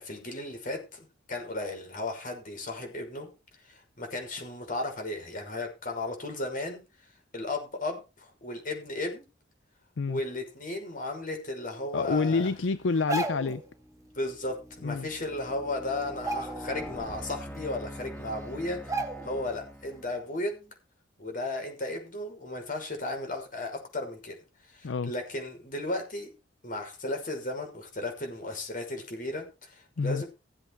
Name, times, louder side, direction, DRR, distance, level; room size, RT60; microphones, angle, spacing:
voice 1, 0.0-3.3 3.6-6.8 7.3-9.3 10.1-12.5 14.1-20.5 21.2-24.4 24.7-26.3 26.6-30.3, left 2 dB, 45° left, 5.8 m, -35 dB
voice 2, 11.9-13.6 14.8-15.1 24.8-25.1 30.0-30.2, left 4 dB, 65° left, 0.5 m, -28 dB
sound 1, 12.6-12.8 13.4-20.3, equal, 10° left, 2.1 m, -44 dB
sound 2, 12.9-13.6 15.1-15.2 15.5-15.7 16.1-17.0 17.4-17.5 18.2-18.3 18.9-19.5 19.9-20.0, right 2 dB, 15° right, 2.1 m, -34 dB
16.0 x 8.1 x 4.8 m
head